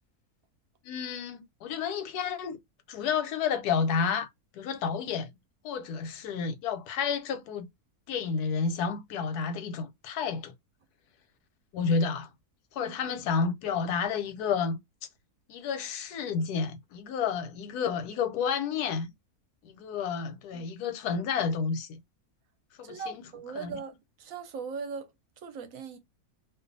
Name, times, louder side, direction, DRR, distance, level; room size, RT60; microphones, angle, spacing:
voice 1, 0.8-2.6 2.9-4.3 4.5-5.3 5.6-7.7 8.1-10.5 11.7-12.3 12.7-14.8 15.5-19.1 19.6-22.0 22.8-23.2 23.6-23.8, left 6 dB, 90° left, 1.1 m, -30 dB
voice 2, 12.8-13.2 20.5-20.7 22.8-25.1 25.4-26.0, right 5 dB, 70° right, 0.9 m, -39 dB
2.5 x 2.3 x 2.5 m
omnidirectional pair, 1.6 m